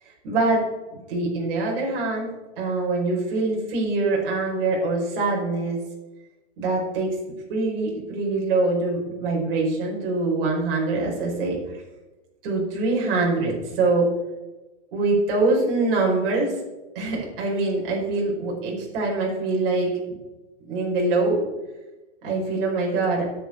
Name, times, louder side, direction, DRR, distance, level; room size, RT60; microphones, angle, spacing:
voice 1, 0.2-2.3 2.6-5.8 6.6-11.8 12.4-14.1 14.9-16.5 16.9-20.0 20.7-21.5 22.2-23.3, right 3 dB, 50° right, -1 dB, 4.9 m, -24 dB
17.5 x 7.5 x 4.4 m, 1.1 s
supercardioid pair, 160°, 36 cm